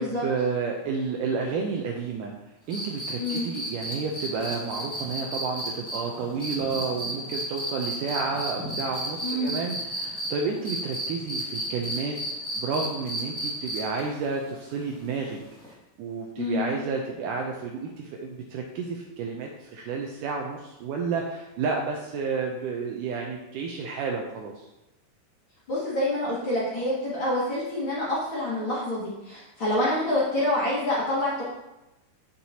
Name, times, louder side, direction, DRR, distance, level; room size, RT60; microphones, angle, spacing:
voice 1, 0.0-2.3 2.7-12.2 12.5-15.4 16.0-24.7, right 5 dB, 80° right, 1 dB, 1.9 m, -31 dB
sound 1, 2.7-10.3 10.6-14.0 15.6-15.7, equal, ahead, 1.1 m, -33 dB
voice 2, 9.2-9.5 16.4-16.7 25.7-31.4, left 1 dB, 45° left, -7 dB, 2.0 m, -27 dB
8.2 x 7.8 x 2.8 m, 0.95 s
omnidirectional pair, 4.2 m